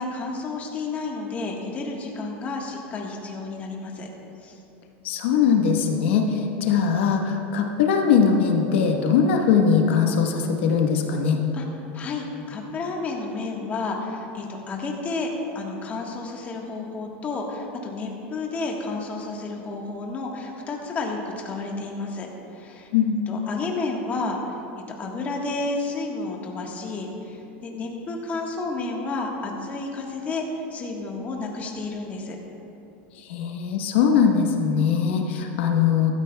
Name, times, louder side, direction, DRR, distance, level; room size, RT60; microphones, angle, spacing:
voice 1, 0.0-4.1 4.4-4.6 11.5-11.7 11.9-15.3 15.5-22.9 23.3-24.5 24.9-32.4, left 3 dB, 25° left, 0 dB, 1.4 m, -31 dB
voice 2, 5.0-11.4 22.9-23.1 33.3-36.1, left 6 dB, 80° left, 2 dB, 1.2 m, -21 dB
15.0 x 13.0 x 2.3 m, 2.9 s
supercardioid pair, 150°, 6 cm